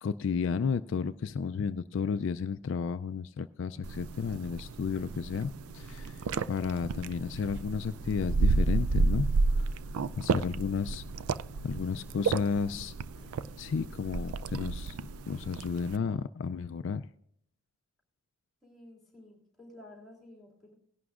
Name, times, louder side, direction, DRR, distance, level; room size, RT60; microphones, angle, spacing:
voice 1, 0.0-9.3 9.6-9.7 10.2-11.0 11.6-12.9 13.6-15.0 15.3-17.1, left 6 dB, 60° left, 11 dB, 0.3 m, -32 dB
sound 1, 3.7-16.2, equal, 25° right, 1.3 m, -52 dB
sound 2, 3.8-16.0, right 3 dB, 85° right, 0.4 m, -31 dB
voice 2, 18.6-20.7, left 1 dB, ahead, -2 dB, 3.1 m, -52 dB
18.0 x 11.0 x 2.4 m, 0.70 s
head